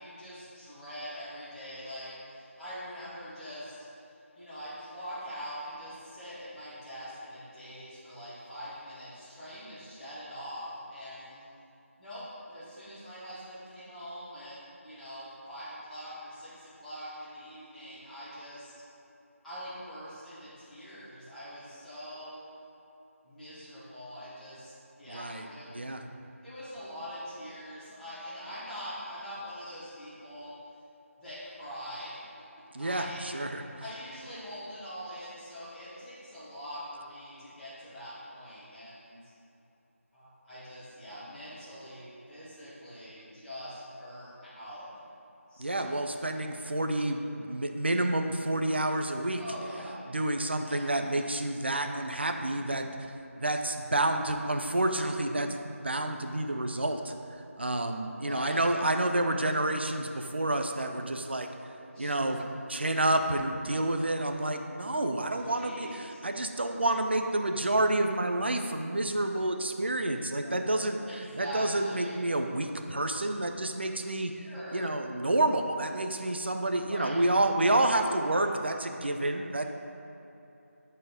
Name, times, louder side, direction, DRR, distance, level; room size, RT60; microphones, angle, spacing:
voice 1, 0.0-3.8 4.3-11.4 12.0-18.7 19.4-22.4 23.2-24.7 25.0-25.7 26.4-30.5 31.2-32.2 32.8-33.3 33.8-39.3 40.1-44.8 45.5-46.0 49.3-50.0 50.6-50.9 53.8-54.4 58.1-58.7 61.9-62.5 65.3-66.2 70.4-70.6 71.0-72.2 74.4-74.9 76.9-77.2, equal, ahead, -19 dB, 1.0 m, -43 dB
voice 2, 25.1-25.5 25.7-26.0 32.7-33.6 45.6-49.4 50.1-53.0 53.4-55.6 55.8-57.1 57.6-61.5 62.0-71.0 71.4-79.7, right 1 dB, 50° right, 5 dB, 0.7 m, -29 dB
10.5 x 4.4 x 5.1 m, 2.9 s
figure-of-eight pair, 175°, 8 cm